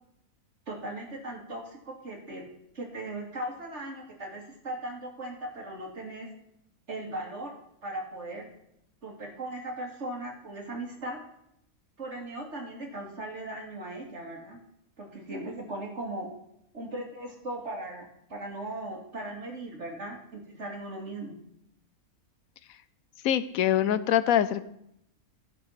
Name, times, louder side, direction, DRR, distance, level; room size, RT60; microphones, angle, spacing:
voice 1, 0.7-2.4 2.7-6.3 6.9-7.6 7.8-8.5 9.0-11.2 12.0-14.6 15.0-16.3 16.7-21.4, right 1 dB, 50° right, 0 dB, 2.6 m, -38 dB
voice 2, 23.2-24.7, left 11 dB, 75° left, 15 dB, 1.1 m, -24 dB
14.5 x 6.7 x 5.8 m, 0.77 s
omnidirectional pair, 1.5 m